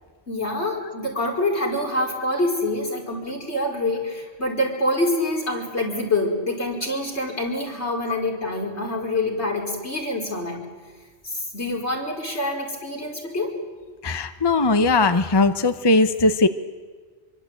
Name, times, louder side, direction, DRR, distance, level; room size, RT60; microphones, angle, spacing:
voice 1, 0.3-10.6 11.2-13.5, left 1 dB, 75° left, -1 dB, 5.3 m, -26 dB
voice 2, 14.0-16.5, left 3 dB, 25° left, 9 dB, 1.0 m, -19 dB
25.5 x 23.5 x 9.1 m, 1.5 s
omnidirectional pair, 1.1 m